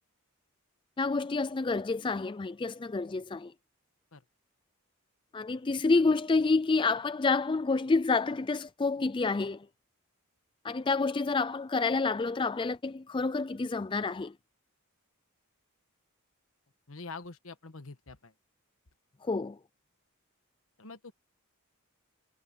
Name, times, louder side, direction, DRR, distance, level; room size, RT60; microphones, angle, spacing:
voice 1, 1.0-3.5 5.3-9.7 10.6-14.3 19.2-19.6, left 3 dB, 20° left, 0.3 m, -28 dB
voice 2, 16.9-18.3 20.8-21.1, left 3 dB, 65° left, 1.4 m, -45 dB
head